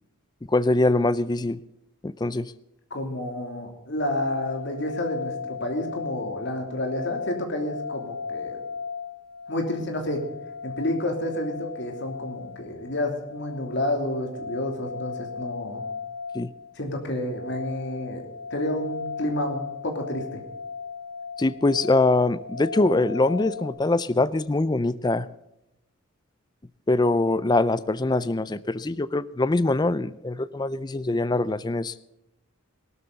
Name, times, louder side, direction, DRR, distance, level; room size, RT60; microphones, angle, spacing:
voice 1, 0.5-1.6 2.0-2.5 16.3-16.5 21.4-25.3 26.9-31.9, left 2 dB, 20° left, 16 dB, 0.4 m, -23 dB
voice 2, 2.9-8.6 9.5-10.2 10.6-15.8 16.8-18.2 18.5-20.4, left 1 dB, 55° left, 3 dB, 3.0 m, -30 dB
sound 1, 4.1-23.7, left 5 dB, 85° left, 6.2 m, -37 dB
18.0 x 13.0 x 4.0 m, 0.90 s
head